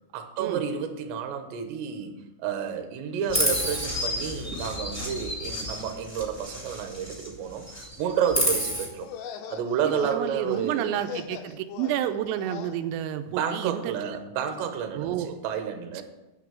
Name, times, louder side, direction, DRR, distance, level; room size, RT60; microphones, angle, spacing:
voice 1, 0.1-9.1 9.5-10.9 13.3-16.0, right 7 dB, 70° right, 6 dB, 3.0 m, -30 dB
Chirp tweet, 3.3-7.3 7.6-8.8, equal, 5° left, 1.3 m, -30 dB
sound 1, 8.9-12.8, left 8 dB, 85° left, 3.3 m, -40 dB
voice 2, 10.0-14.2 14.9-15.4, right 11 dB, 90° right, 8 dB, 3.4 m, -30 dB
9.2 x 5.9 x 7.5 m, 0.97 s
omnidirectional pair, 5.8 m